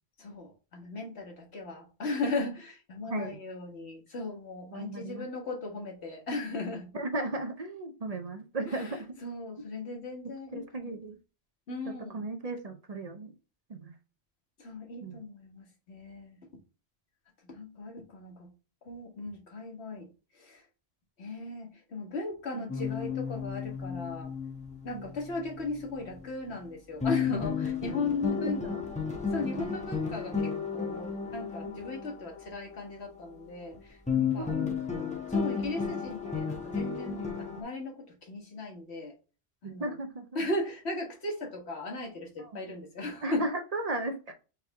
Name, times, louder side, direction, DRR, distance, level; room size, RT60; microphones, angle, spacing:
voice 1, 0.2-6.9 8.7-11.0 11.7-12.3 14.6-16.5 17.4-18.5 18.8-20.1 20.3-20.6 21.2-24.3 24.8-28.6 29.3-34.6 35.3-39.2 39.6-40.0 40.3-43.4, left 2 dB, 90° left, 1.7 m, -37 dB
voice 2, 3.1-3.4 4.7-5.3 6.9-9.0 10.5-11.2 11.9-13.3 13.7-13.9 15.0-15.2 22.5-22.7 24.9-25.1 28.4-28.8 31.6-31.8 34.1-34.8 39.6-40.4 42.4-42.6 43.2-44.3, right 2 dB, 45° right, 0.7 m, -36 dB
sound 1, 22.7-26.6 27.0-33.8 34.1-37.6, left 6 dB, 10° left, 0.8 m, -33 dB
4.6 x 3.4 x 3.4 m
omnidirectional pair, 1.1 m